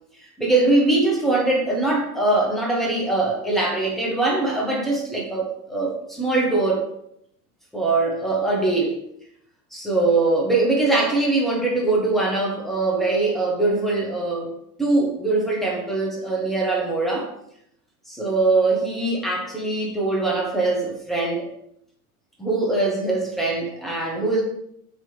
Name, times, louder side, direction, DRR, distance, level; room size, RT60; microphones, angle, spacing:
voice 1, 0.4-6.9 7.7-9.0 9.7-14.5 14.8-17.3 18.1-21.5 22.4-24.4, right 2 dB, ahead, -2 dB, 0.9 m, -22 dB
4.0 x 2.9 x 3.1 m, 0.74 s
figure-of-eight pair, 80°, 47 cm